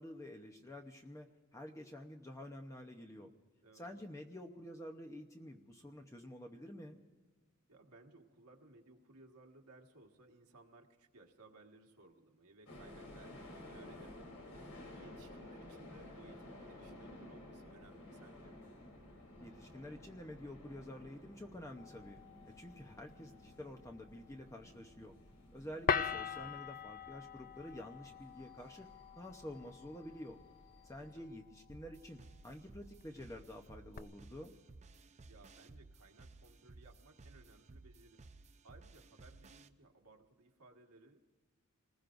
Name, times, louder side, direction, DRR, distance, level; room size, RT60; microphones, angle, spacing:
voice 1, 0.0-3.3 3.7-7.0 19.4-22.2 22.4-25.1 25.5-28.9 29.2-30.4 30.8-34.5, left 1 dB, 15° left, 2 dB, 0.8 m, -49 dB
voice 2, 7.7-18.6 31.0-31.4 35.3-38.2 38.6-41.2, right 2 dB, 90° right, 2 dB, 1.7 m, -61 dB
sound 1, 12.7-31.2, left 1 dB, 75° left, 3.4 m, -55 dB
sound 2, 21.8-34.0, left 6 dB, 40° left, 0.5 m, -44 dB
sound 3, 31.7-39.7, right 3 dB, 30° right, 0.5 m, -58 dB
28.0 x 20.0 x 2.6 m, 1.4 s
head